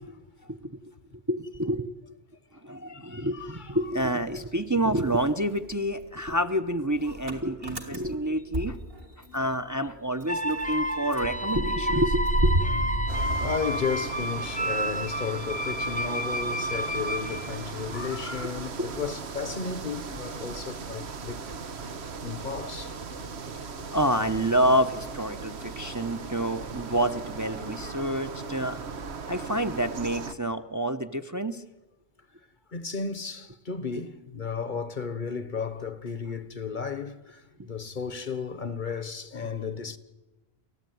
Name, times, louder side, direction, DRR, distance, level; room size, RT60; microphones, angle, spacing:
voice 1, 1.3-1.9 2.6-8.8 9.3-12.7 17.9-18.0 18.8-18.9 23.9-28.8 29.3-31.6 37.6-37.7, right 1 dB, 20° right, 0.8 m, -28 dB
voice 2, 2.7-3.9 9.2-9.4 10.5-10.6 11.1-11.3 13.4-21.6 22.2-23.0 32.7-40.0, left 5 dB, 50° left, 1.3 m, -34 dB
Motor vehicle (road) / Engine starting, 3.4-4.6 4.9-9.6 9.9-10.0 10.2-14.3, right 1 dB, 65° right, 2.9 m, -31 dB
sound 1, 10.3-18.2, equal, 10° left, 0.9 m, -31 dB
sound 2, 13.1-30.3, right 5 dB, 90° right, 1.4 m, -38 dB
29.5 x 14.5 x 9.4 m
omnidirectional pair, 1.1 m